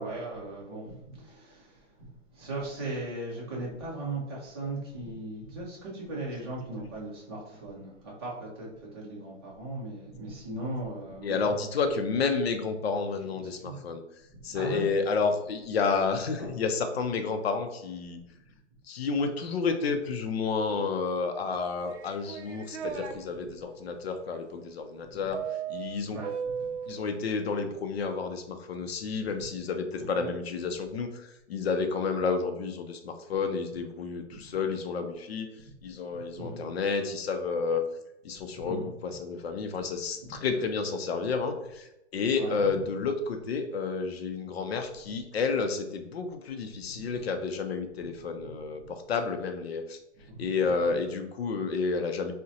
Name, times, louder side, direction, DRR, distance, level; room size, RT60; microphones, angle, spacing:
voice 1, 0.0-11.5 13.4-13.8 14.3-14.9 16.3-16.6 18.2-18.3 22.7-23.1 23.3-23.6 25.1-25.3 26.1-26.8 29.2-29.4 30.0-30.3 34.3-34.5 35.6-36.6 38.3-38.9 40.2-40.4 42.3-42.8 45.0-45.2 46.9-47.2 48.0-48.9 50.1-50.4, right 2 dB, 20° right, -5 dB, 0.6 m, -39 dB
voice 2, 11.2-14.0 14.4-18.2 18.9-25.4 25.7-26.2 26.9-35.5 35.8-37.9 38.2-41.9 42.1-50.0 50.4-52.3, left 4 dB, 60° left, 7 dB, 0.5 m, -30 dB
sound 1, 21.9-23.1 25.3-26.9, right 7 dB, 65° right, 0.5 m, -35 dB
3.6 x 2.1 x 2.7 m, 0.87 s
hypercardioid pair, 170°, 36 cm